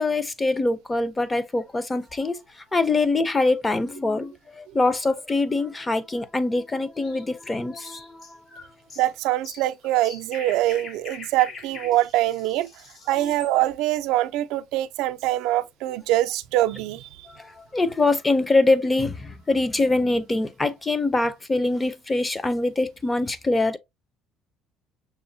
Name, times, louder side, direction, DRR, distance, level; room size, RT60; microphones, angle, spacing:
voice 1, 0.0-8.4 13.2-13.3 17.3-23.8, left 2 dB, 15° left, 0.5 m, -24 dB
sound 1, 6.9-13.5, left 4 dB, 45° left, 1.0 m, -43 dB
voice 2, 9.0-12.7 13.1-17.3, right 15 dB, 85° right, 0.3 m, -24 dB
6.1 x 2.1 x 2.7 m
cardioid pair, 140°, 0 cm